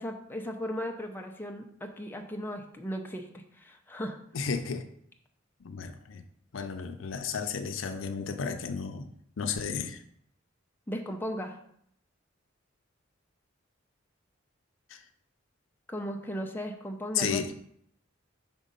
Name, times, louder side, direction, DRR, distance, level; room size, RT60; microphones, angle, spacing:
voice 1, 0.0-3.3 3.5-4.2 10.9-11.6 15.9-17.5, equal, 10° left, 2 dB, 0.6 m, -36 dB
voice 2, 4.3-4.8 5.6-6.2 6.5-9.1 9.4-10.0 14.9-15.0 17.1-17.5, left 6 dB, 80° left, 8 dB, 0.5 m, -33 dB
5.3 x 3.6 x 5.3 m, 0.69 s
head